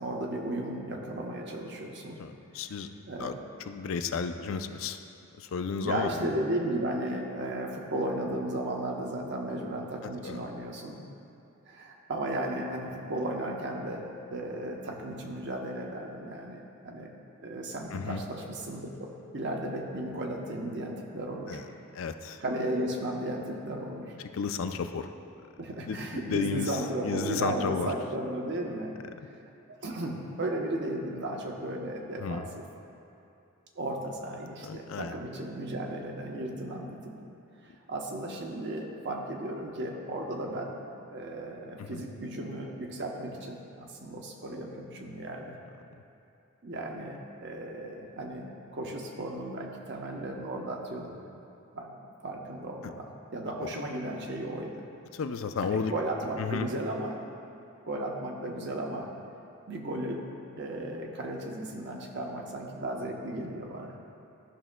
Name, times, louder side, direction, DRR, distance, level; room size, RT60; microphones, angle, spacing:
voice 1, 0.0-2.2 3.1-3.4 5.8-11.0 11.7-17.1 17.4-21.6 22.4-24.1 25.6-28.9 29.7-32.6 33.8-37.2 37.6-40.8 41.1-45.6 46.6-51.2 51.7-52.0 52.2-54.9 55.6-57.2 57.9-59.1 59.7-60.2 60.6-64.0, right 1 dB, 55° right, 0 dB, 0.8 m, -35 dB
voice 2, 2.2-2.9 3.2-3.3 3.7-5.0 5.4-6.3 10.2-10.4 17.9-18.2 21.5-21.7 22.0-22.4 24.3-25.1 25.9-26.8 27.0-27.9 32.2-32.4 34.6-35.2 41.8-42.0 47.0-47.2 53.6-53.7 55.1-55.9 56.4-56.7, left 5 dB, 65° left, 8 dB, 0.4 m, -33 dB
13.0 x 5.9 x 2.2 m, 2.8 s
head